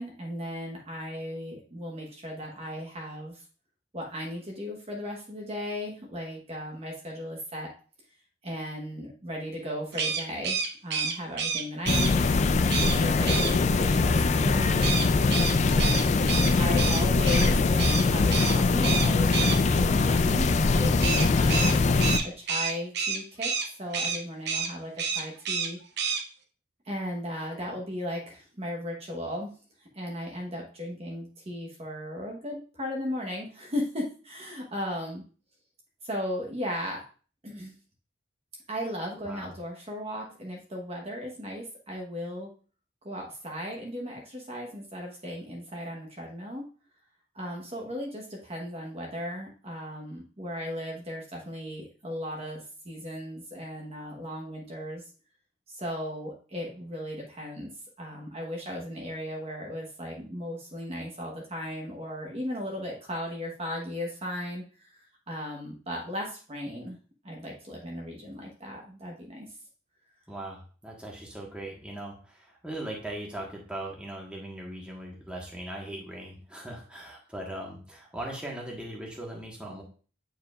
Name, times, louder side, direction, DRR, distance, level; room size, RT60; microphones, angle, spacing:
voice 1, 0.0-3.4 3.9-7.7 8.4-12.4 12.8-15.0 15.7-16.3 16.6-21.7 22.2-25.8 26.8-29.5 29.8-35.2 36.0-37.0 37.4-37.7 38.7-42.5 43.0-46.6 47.3-55.1 55.7-57.7 58.0-67.0 67.2-69.5, equal, 30° right, 0 dB, 1.1 m, -36 dB
sound 1, 9.9-12.1 12.7-13.0 13.3-13.5 14.8-17.5 17.8-18.0 18.3-18.6 18.8-19.6 21.0-23.7 23.9-24.2 24.4-24.7 25.0-25.7 26.0-26.2, right 6 dB, 55° right, 0.7 m, -29 dB
sound 2, 11.9-22.2, left 3 dB, 35° left, 0.3 m, -22 dB
voice 2, 70.3-79.8, right 1 dB, 5° right, -2 dB, 1.3 m, -39 dB
8.6 x 4.7 x 2.4 m, 0.39 s
head